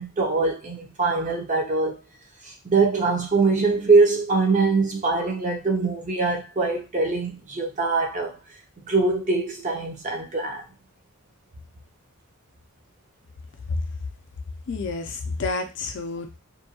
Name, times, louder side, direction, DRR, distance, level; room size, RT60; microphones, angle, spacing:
voice 1, 0.0-2.0 2.4-8.4 8.8-10.6, right 3 dB, 35° right, 0.6 m, -23 dB
voice 2, 14.7-16.4, left 3 dB, 60° left, 0.4 m, -29 dB
2.6 x 2.2 x 2.8 m
head